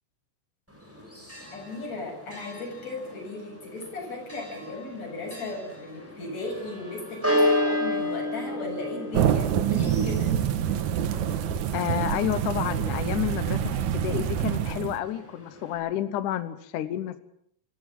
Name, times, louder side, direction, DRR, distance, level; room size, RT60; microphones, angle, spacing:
Church bell, 0.7-15.8, left 1 dB, 5° right, 6.4 m, -33 dB
voice 1, 1.5-10.3, left 2 dB, 40° left, 0 dB, 9.1 m, -36 dB
sound 1, 9.1-15.0, right 9 dB, 70° right, 1.9 m, -26 dB
voice 2, 11.7-17.2, left 11 dB, 70° left, 12 dB, 2.0 m, -30 dB
26.0 x 16.0 x 7.6 m, 0.68 s
omnidirectional pair, 4.8 m